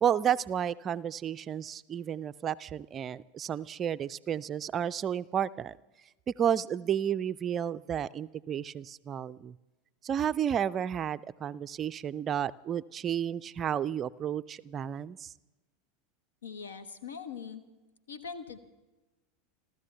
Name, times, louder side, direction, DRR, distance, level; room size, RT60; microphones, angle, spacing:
voice 1, 0.0-5.8 6.3-9.6 10.0-15.3, right 9 dB, 30° right, 14 dB, 0.4 m, -32 dB
voice 2, 16.4-17.6 18.1-18.6, left 6 dB, 70° left, 13 dB, 1.3 m, -41 dB
30.0 x 13.0 x 3.4 m, 1.1 s
figure-of-eight pair, 80°, 0 cm